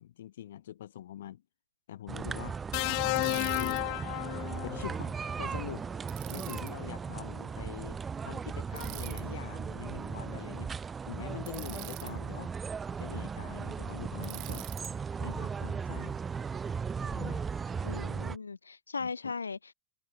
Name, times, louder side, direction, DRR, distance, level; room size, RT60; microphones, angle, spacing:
voice 1, 0.0-1.4 1.9-2.6 2.9-3.8 4.5-5.9 6.3-10.7 11.0-12.5 13.0-14.7 15.2-16.2 17.0-17.4 19.0-19.3, left 12 dB, 60° left, 4.6 m, -44 dB
sound 1, 2.1-18.4, right 6 dB, 15° right, 1.4 m, -37 dB
sound 2, 2.7-5.0 6.3-6.5, left 40 dB or more, 45° left, 3.2 m, -32 dB
Bicycle, 3.1-3.8 6.1-6.7 8.7-9.2 11.5-12.1 14.2-14.9, right 28 dB, 45° right, 2.3 m, -44 dB
voice 2, 17.8-19.7, left 5 dB, 75° left, 1.8 m, -38 dB
figure-of-eight pair, 90°, 0 cm